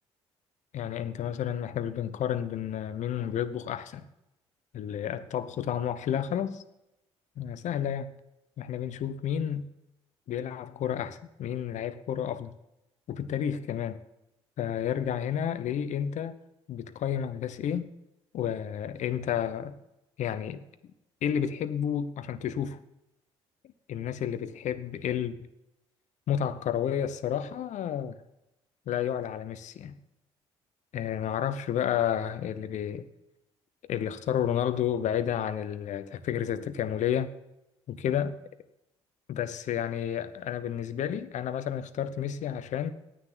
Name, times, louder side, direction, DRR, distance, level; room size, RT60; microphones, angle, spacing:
voice 1, 0.7-4.0 4.7-6.6 7.4-8.1 8.6-9.7 10.3-12.5 13.1-14.0 14.6-16.4 16.7-17.9 18.3-19.7 20.2-20.6 21.2-22.8 23.9-25.3 26.3-28.2 28.9-30.0 30.9-33.1 33.9-37.3 37.9-38.4 39.3-42.9, left 9 dB, 55° left, 0.9 m, -31 dB
10.0 x 9.0 x 9.2 m
hypercardioid pair, 50°, 15 cm